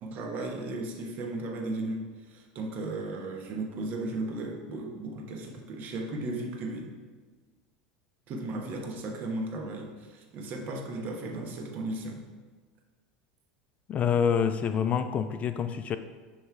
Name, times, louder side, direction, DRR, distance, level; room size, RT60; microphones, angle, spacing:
voice 1, 0.0-2.0 2.3-6.9 8.3-12.2, right 2 dB, 45° right, 1 dB, 1.2 m, -35 dB
voice 2, 13.9-16.0, left 7 dB, 35° left, 10 dB, 0.3 m, -27 dB
7.9 x 3.1 x 4.7 m, 1.4 s
hypercardioid pair, 105°, 4 cm